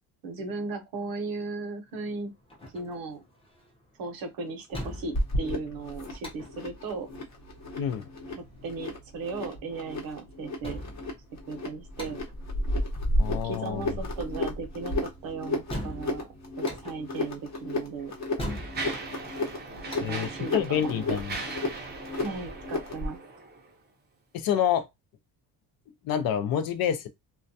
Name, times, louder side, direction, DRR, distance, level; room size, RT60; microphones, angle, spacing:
voice 1, 0.2-2.3 2.7-3.2 4.0-7.1 8.4-10.8 11.5-12.2 13.3-16.3 16.6-18.1 19.9-21.2 22.2-23.2, right 3 dB, 60° right, 0.8 m, -36 dB
sound 1, 1.9-21.1, equal, 15° left, 0.6 m, -43 dB
sound 2, 5.1-23.2, left 1 dB, 40° left, 0.8 m, -33 dB
voice 2, 13.2-13.8 20.0-21.4 24.3-24.9 26.0-27.1, left 9 dB, 60° left, 0.5 m, -27 dB
Mechanisms, 17.1-17.3 18.0-23.7, right 3 dB, 25° right, 0.5 m, -39 dB
2.2 x 2.2 x 2.6 m
cardioid pair, 140°, 40 cm